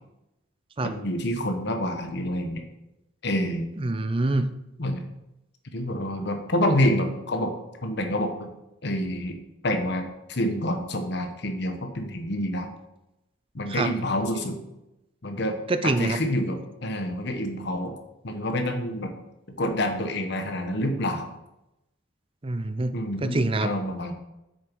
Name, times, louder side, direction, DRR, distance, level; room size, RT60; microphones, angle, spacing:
voice 1, 0.8-2.6 3.2-3.7 4.8-5.0 5.7-7.5 7.8-8.5 8.8-9.3 9.6-12.7 13.5-14.6 15.2-15.6 15.8-17.9 18.2-19.1 19.6-21.3 22.9-24.1, left 1 dB, 60° left, 5 dB, 1.2 m, -27 dB
voice 2, 3.8-4.5 13.7-13.9 15.7-16.2 22.4-22.9 23.3-23.7, right 2 dB, 30° right, 11 dB, 0.5 m, -25 dB
7.8 x 6.7 x 4.7 m, 0.91 s
head